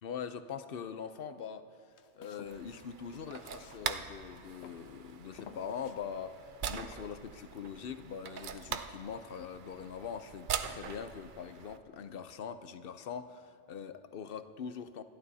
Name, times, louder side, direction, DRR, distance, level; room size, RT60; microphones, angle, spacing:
voice 1, 0.0-1.7 2.2-15.0, left 7 dB, 60° left, 10 dB, 0.8 m, -42 dB
Walk footsteps, 1.9-4.2 4.6-5.0 5.4-6.0 6.6-7.1, left 7 dB, 90° left, 1.0 m, -53 dB
sound 1, 2.5-11.8, right 7 dB, 55° right, 0.7 m, -42 dB
28.0 x 12.5 x 2.7 m, 2.7 s
omnidirectional pair, 1.1 m